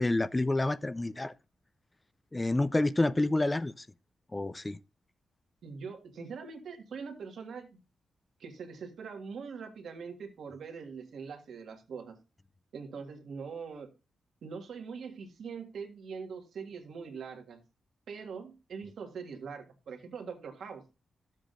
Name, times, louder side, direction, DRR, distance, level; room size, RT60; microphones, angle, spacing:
voice 1, 0.0-1.3 2.3-3.9 4.3-4.8, left 2 dB, 20° left, 0.4 m, -28 dB
voice 2, 5.6-7.7 8.4-12.2 12.7-13.9 14.4-17.6 18.1-20.8, right 5 dB, 75° right, 1.7 m, -42 dB
13.0 x 7.4 x 2.5 m
cardioid pair, 80°, 0 cm